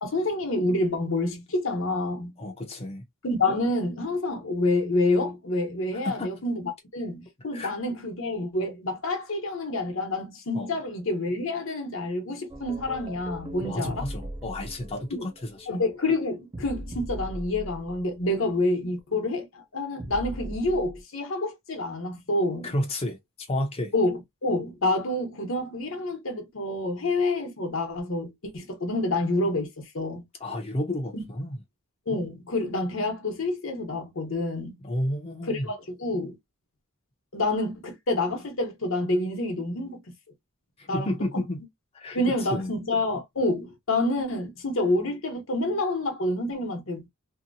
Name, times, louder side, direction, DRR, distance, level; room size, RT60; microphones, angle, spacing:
voice 1, 0.0-2.3 3.2-14.1 15.1-15.3 15.7-22.7 23.9-30.2 31.1-31.2 32.1-34.8 35.5-36.4 37.3-40.0 40.9-41.2 42.1-47.1, left 2 dB, 70° left, 0.9 m, -28 dB
voice 2, 2.4-3.0 6.0-6.3 7.5-7.7 10.5-10.7 13.7-15.7 22.6-23.2 23.5-23.9 30.4-31.6 34.8-35.7 40.8-41.7 41.9-42.2 42.5-42.7, left 1 dB, 30° left, 0.6 m, -31 dB
sound 1, 12.5-18.3 20.0-21.0, equal, 25° right, 0.4 m, -39 dB
2.8 x 2.1 x 2.6 m
head